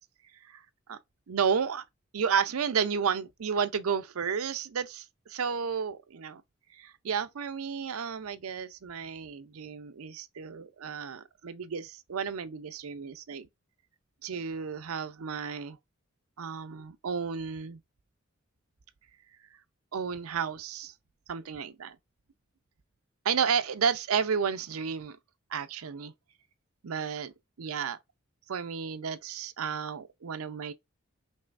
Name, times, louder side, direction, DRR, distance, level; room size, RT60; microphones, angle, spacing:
voice 1, 1.3-1.8 2.1-6.4 6.7-13.5 14.2-15.8 16.4-17.8 19.9-20.9 21.3-22.0 23.2-25.2 25.5-26.1 26.8-27.3 27.6-28.0 28.5-30.7, right 6 dB, 85° right, 0.5 m, -32 dB
5.4 x 3.2 x 2.5 m
head